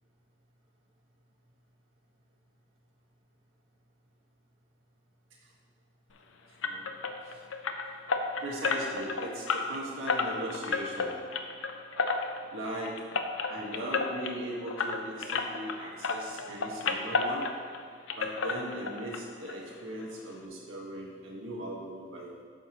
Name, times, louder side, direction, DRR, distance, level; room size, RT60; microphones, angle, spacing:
sound 1, 6.6-15.8 16.0-17.8 18.1-19.2 19.5-19.6 20.0-20.1 20.4-20.5, left 4 dB, 80° left, 0.6 m, -32 dB
voice 1, 8.4-11.1 12.5-12.9 13.5-17.4 18.2-22.3, right 1 dB, 90° right, -3 dB, 1.6 m, -39 dB
9.1 x 6.7 x 3.0 m, 2.1 s
head